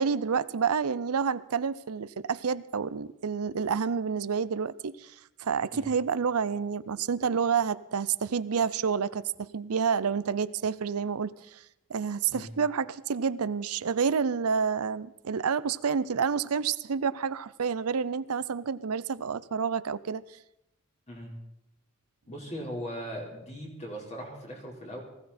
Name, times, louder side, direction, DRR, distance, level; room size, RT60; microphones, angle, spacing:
voice 1, 0.0-5.1 5.4-11.6 11.9-20.2, right 6 dB, 85° right, 0.6 m, -29 dB
voice 2, 22.3-25.0, equal, 30° left, 4.4 m, -39 dB
19.5 x 16.0 x 4.3 m
head